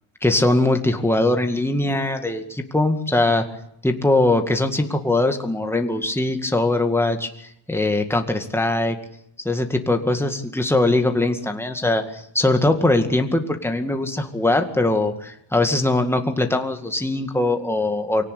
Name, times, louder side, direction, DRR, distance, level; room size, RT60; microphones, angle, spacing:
voice 1, 0.2-3.5 3.8-7.3 7.7-9.0 9.4-18.2, left 2 dB, 5° left, 5 dB, 2.1 m, -21 dB
24.5 x 17.5 x 8.5 m, 0.74 s
cardioid pair, 120°, 47 cm